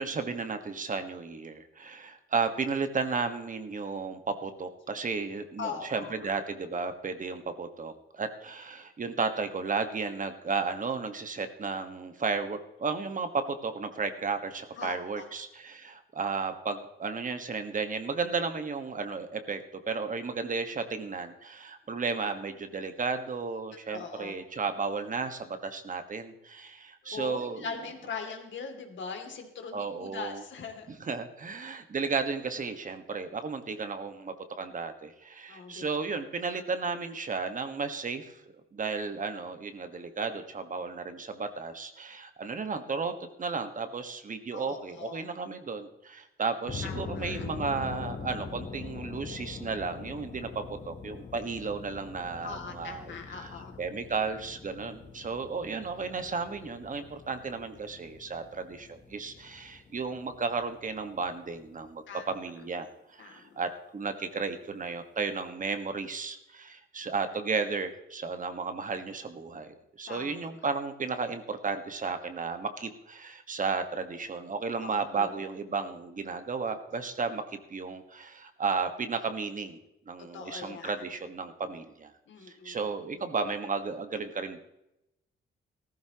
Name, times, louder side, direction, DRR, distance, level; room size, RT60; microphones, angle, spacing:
voice 1, 0.0-19.6 19.9-27.7 29.7-30.4 31.0-38.3 38.7-43.1 43.4-53.5 53.8-77.4 77.7-79.8 80.1-82.1 82.5-84.6, right 4 dB, 40° right, 8 dB, 1.4 m, -34 dB
voice 2, 5.6-6.1 14.8-15.2 23.9-24.3 27.0-30.9 35.5-36.0 44.5-45.2 46.8-47.4 52.4-53.8 62.1-62.3 63.2-63.5 70.1-70.4 74.8-75.4 80.3-81.0 82.3-82.9, left 5 dB, 65° left, 3 dB, 2.6 m, -41 dB
sound 1, 46.6-61.9, left 5 dB, 35° left, 1.2 m, -43 dB
15.5 x 14.0 x 2.9 m, 0.87 s
cardioid pair, 110°, 21 cm